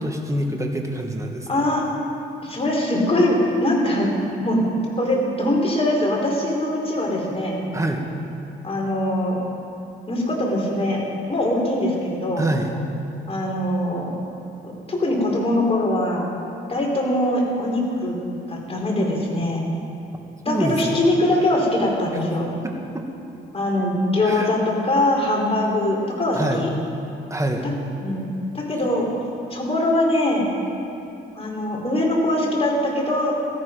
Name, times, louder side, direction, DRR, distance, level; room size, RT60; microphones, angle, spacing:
voice 1, 0.0-1.5 7.7-8.0 12.4-12.7 20.5-20.9 22.6-23.0 24.2-24.5 26.3-26.7 27.3-27.7, right 1 dB, 15° right, 2 dB, 1.9 m, -25 dB
voice 2, 1.5-1.8 2.4-4.1 4.4-4.6 5.0-7.6 8.6-9.4 10.1-11.0 11.3-12.4 13.3-14.1 14.6-16.3 16.7-18.2 18.5-19.6 20.4-22.5 23.5-26.7 28.0-29.1 29.5-30.5 31.3-33.3, left 1 dB, 30° left, -2 dB, 4.4 m, -22 dB
17.5 x 14.0 x 5.3 m, 2.9 s
cardioid pair, 90°, 20 cm